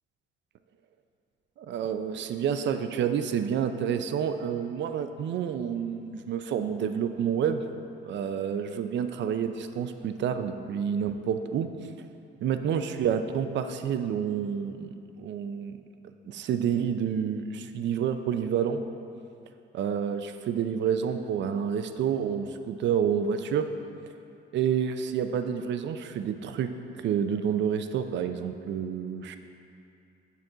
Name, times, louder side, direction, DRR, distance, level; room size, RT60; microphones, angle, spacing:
voice 1, 1.6-11.7 12.4-15.8 16.3-18.8 19.7-23.7 24.5-26.7 27.0-29.4, right 8 dB, 65° right, 8 dB, 0.5 m, -29 dB
8.3 x 6.0 x 3.8 m, 2.6 s
cardioid pair, 90°, 20 cm